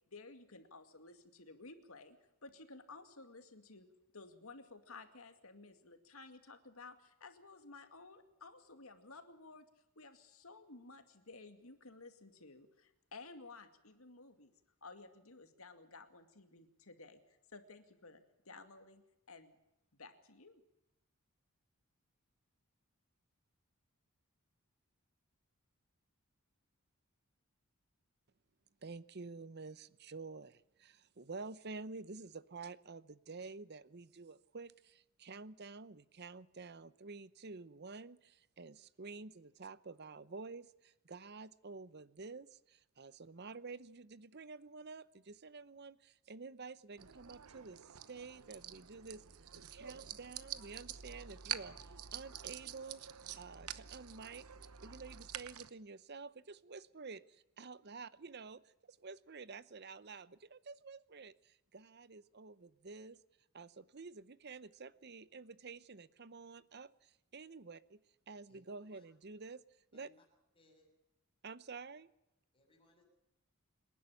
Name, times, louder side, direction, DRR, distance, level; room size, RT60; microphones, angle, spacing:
voice 1, 0.1-3.9 4.1-9.7 10.0-14.5 14.8-19.0 19.3-19.6 20.0-20.6, left 3 dB, 75° left, 8 dB, 2.3 m, -55 dB
voice 2, 28.8-49.2 49.7-53.0 53.4-54.4 54.8-57.2 57.6-58.6 58.9-63.2 63.5-66.9 67.3-68.0 68.3-69.6 69.9-70.1 71.4-72.1, right 4 dB, 50° right, 17 dB, 0.8 m, -50 dB
sound 1, 47.0-55.7, right 10 dB, 85° right, 0.9 m, -47 dB
voice 3, 70.5-70.9 72.5-73.0, left 2 dB, 25° left, 1 dB, 7.0 m, -68 dB
26.5 x 11.0 x 9.9 m, 0.88 s
head